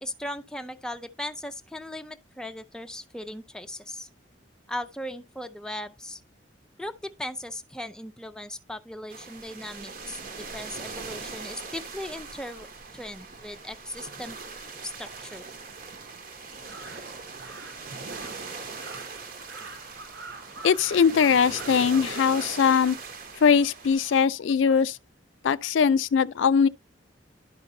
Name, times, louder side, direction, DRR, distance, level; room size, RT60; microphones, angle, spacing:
voice 1, 0.0-4.1 4.7-6.2 6.8-10.2 10.5-12.7 12.9-14.4 14.8-15.4, left 1 dB, 5° left, 0.5 m, -38 dB
sound 1, 9.1-24.1, right 4 dB, 50° right, 1.1 m, -40 dB
Crow, 16.5-23.9, right 3 dB, 75° right, 1.3 m, -46 dB
voice 2, 20.6-23.0 23.4-25.0 25.4-26.7, left 6 dB, 90° left, 0.4 m, -21 dB
11.5 x 5.2 x 2.7 m
head